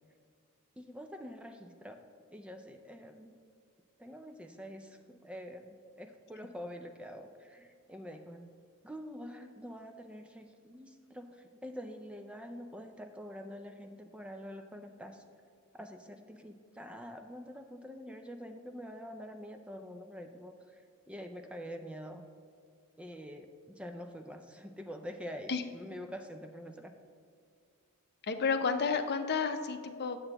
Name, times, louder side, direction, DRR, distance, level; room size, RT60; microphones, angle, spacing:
voice 1, 0.8-2.0 2.3-3.4 4.0-8.5 8.8-15.2 15.7-22.2 23.0-27.0, equal, 5° right, 5 dB, 0.3 m, -46 dB
voice 2, 28.3-30.2, left 5 dB, 50° left, 7 dB, 0.6 m, -31 dB
9.6 x 7.7 x 2.9 m, 2.3 s
head